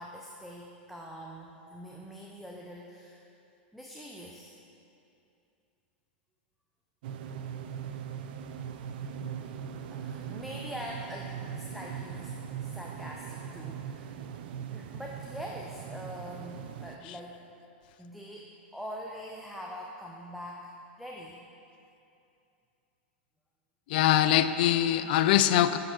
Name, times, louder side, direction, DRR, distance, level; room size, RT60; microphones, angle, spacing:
voice 1, 0.0-3.2 3.7-4.6 9.9-14.1 14.7-17.4 18.0-18.5 18.7-21.4, equal, ahead, -2 dB, 0.5 m, -43 dB
sound 1, 7.0-17.0, right 8 dB, 65° right, 0.4 m, -40 dB
voice 2, 23.9-25.8, left 12 dB, 60° left, 12 dB, 0.3 m, -23 dB
6.7 x 6.6 x 4.4 m, 2.7 s
hypercardioid pair, 130°, 6 cm